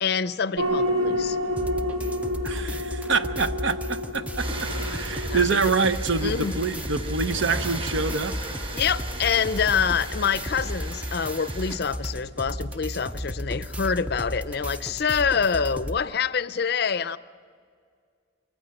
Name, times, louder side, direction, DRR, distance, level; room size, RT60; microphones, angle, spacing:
voice 1, 0.0-1.4 5.2-5.5 6.2-6.6 8.7-17.2, left 6 dB, 50° left, 0.5 m, -26 dB
sound 1, 0.6-15.4, left 1 dB, 85° right, 3.6 m, -33 dB
sound 2, 1.6-16.0, equal, 5° right, 0.4 m, -34 dB
voice 2, 2.4-8.4, right 4 dB, 70° right, 0.8 m, -26 dB
sound 3, 4.4-11.8, right 1 dB, 30° right, 3.8 m, -36 dB
24.0 x 15.0 x 7.7 m
head